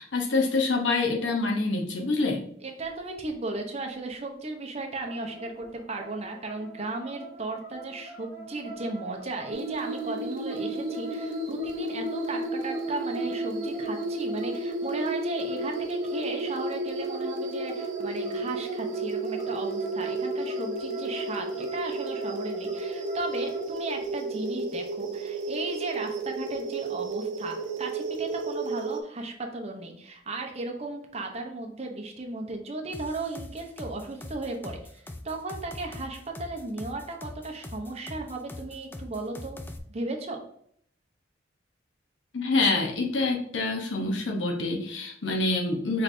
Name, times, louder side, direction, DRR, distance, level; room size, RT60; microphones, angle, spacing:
voice 1, 0.0-2.4 42.3-46.0, left 3 dB, 75° left, 0 dB, 0.8 m, -26 dB
voice 2, 2.6-39.6 39.9-40.4, right 2 dB, 35° right, 3 dB, 0.8 m, -35 dB
sound 1, 5.0-23.7, right 3 dB, 60° left, 1.4 m, -43 dB
sound 2, 9.5-29.0, right 2 dB, 85° right, 0.7 m, -32 dB
sound 3, 32.9-39.8, left 1 dB, 10° left, 0.3 m, -41 dB
5.9 x 3.3 x 2.6 m, 0.65 s
head